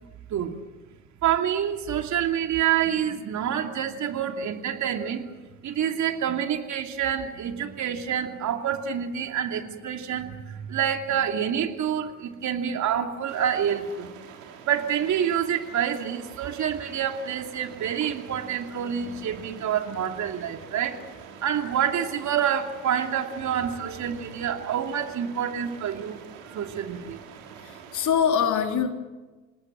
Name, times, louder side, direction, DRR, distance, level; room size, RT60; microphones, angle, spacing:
voice 1, 1.2-14.1 14.6-26.2 26.5-27.2 27.5-27.6, right 9 dB, 45° right, 5 dB, 2.8 m, -27 dB
sound 1, 13.3-28.1, right 7 dB, 70° right, 4.3 m, -46 dB
voice 2, 27.7-28.9, left 7 dB, 50° left, 5 dB, 3.7 m, -23 dB
28.5 x 19.5 x 7.6 m, 1.2 s
hypercardioid pair, 65°, 39 cm